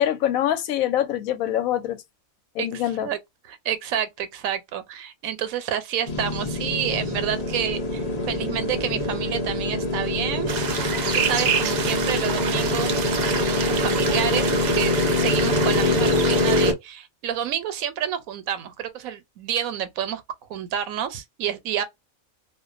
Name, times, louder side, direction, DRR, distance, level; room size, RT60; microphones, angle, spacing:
voice 1, 0.0-2.0 2.5-3.1, left 11 dB, 85° left, 1.0 m, -24 dB
voice 2, 2.6-3.2 3.5-10.5 11.1-13.0 13.5-20.2 20.5-21.8, right 9 dB, 90° right, 1.1 m, -29 dB
sound 1, 6.1-16.7, left 2 dB, 40° left, 0.6 m, -24 dB
sound 2, 10.5-16.7, right 6 dB, 65° right, 0.4 m, -28 dB
2.4 x 2.2 x 2.4 m
omnidirectional pair, 1.4 m